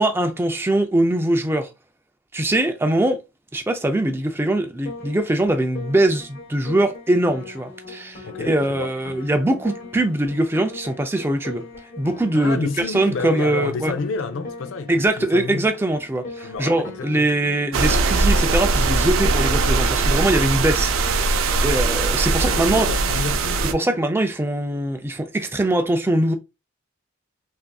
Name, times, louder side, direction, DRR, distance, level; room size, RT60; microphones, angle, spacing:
voice 1, 0.0-1.7 2.3-3.2 3.5-11.7 12.0-13.9 14.9-22.9 23.7-26.3, right 1 dB, 10° right, 0.4 m, -22 dB
Piano, 4.9-24.0, left 2 dB, 50° left, 1.1 m, -39 dB
voice 2, 8.2-8.9 12.3-15.7 16.4-17.3 22.4-23.5, left 4 dB, 75° left, 0.5 m, -30 dB
sound 1, 17.7-23.7, right 3 dB, 85° right, 0.4 m, -20 dB
3.5 x 2.6 x 2.3 m
head